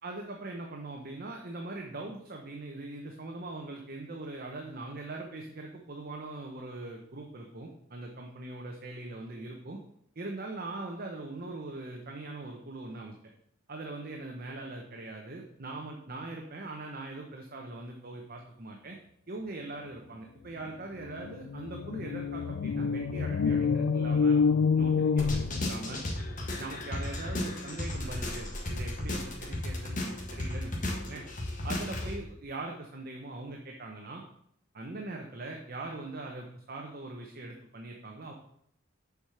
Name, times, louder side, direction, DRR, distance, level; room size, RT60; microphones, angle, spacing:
voice 1, 0.0-9.8 10.2-13.1 13.7-19.0 19.3-24.4 24.8-26.0 26.6-31.2 31.6-34.2 34.7-38.3, right 2 dB, 50° right, 1 dB, 0.9 m, -41 dB
sound 1, 20.7-20.8 21.0-26.1, left 5 dB, 90° left, 0.4 m, -27 dB
sound 2, 25.2-32.1, left 1 dB, 40° left, 1.5 m, -35 dB
7.0 x 4.9 x 5.7 m, 0.70 s
head